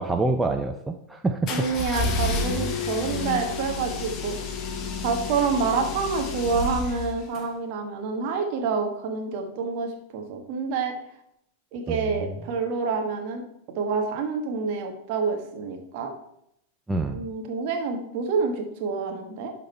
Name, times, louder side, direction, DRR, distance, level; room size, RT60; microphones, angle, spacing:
voice 1, 0.0-1.7 11.9-12.4 16.9-17.3, right 3 dB, 10° right, 5 dB, 0.5 m, -27 dB
sound 1, 1.5-7.4, left 3 dB, 35° left, 1.1 m, -30 dB
voice 2, 1.5-4.3 5.0-10.9 11.7-13.4 13.7-16.1 17.1-19.5, right 5 dB, 45° right, 3 dB, 1.5 m, -27 dB
11.5 x 4.0 x 4.4 m, 0.76 s
figure-of-eight pair, 90°, 0 cm